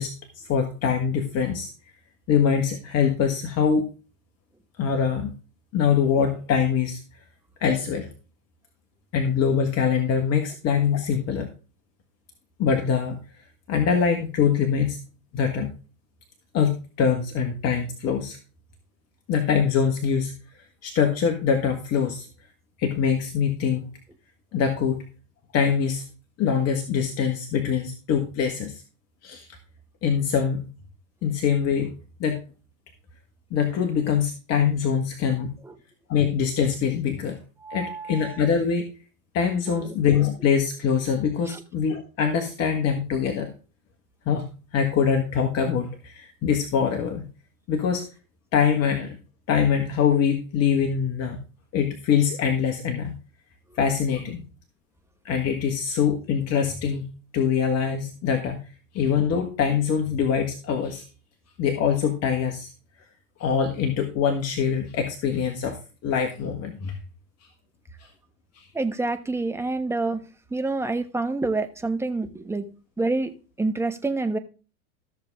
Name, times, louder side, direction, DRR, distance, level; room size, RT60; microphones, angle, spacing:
voice 1, 0.0-1.7 2.3-3.8 4.8-5.3 5.7-7.0 7.6-8.1 9.1-11.5 12.6-13.2 13.7-15.0 15.3-15.7 16.5-18.4 19.3-20.3 20.8-22.3 22.8-23.8 24.5-25.0 25.5-26.0 26.4-28.8 29.2-29.5 30.0-30.7 31.2-31.9 32.2-32.4 33.5-35.5 36.1-37.4 37.7-38.9 39.3-43.5 44.2-47.3 47.7-48.0 48.5-49.2 49.5-51.4 51.7-53.1 53.8-54.4 55.2-57.0 57.3-58.6 58.9-61.0 61.6-62.7 63.4-67.0 68.5-68.6, left 7 dB, 35° left, 5 dB, 1.6 m, -23 dB
voice 2, 37.6-38.4 39.7-39.9 41.5-41.6 68.7-70.2 70.5-72.7 73.0-74.4, right 3 dB, 5° right, 7 dB, 1.1 m, -27 dB
14.0 x 6.7 x 3.6 m, 0.35 s
hypercardioid pair, 110°, 44 cm